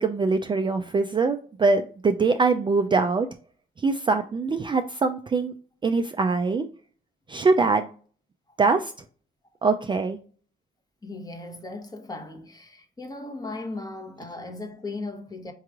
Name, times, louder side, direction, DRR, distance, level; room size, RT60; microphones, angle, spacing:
voice 1, 0.0-3.3 3.8-5.5 5.8-6.6 7.3-7.9 8.6-8.9 9.6-10.2, right 4 dB, 25° right, 0.3 m, -23 dB
voice 2, 11.0-15.5, left 2 dB, 20° left, 0.9 m, -37 dB
4.6 x 3.0 x 2.4 m
cardioid pair, 90°, 20 cm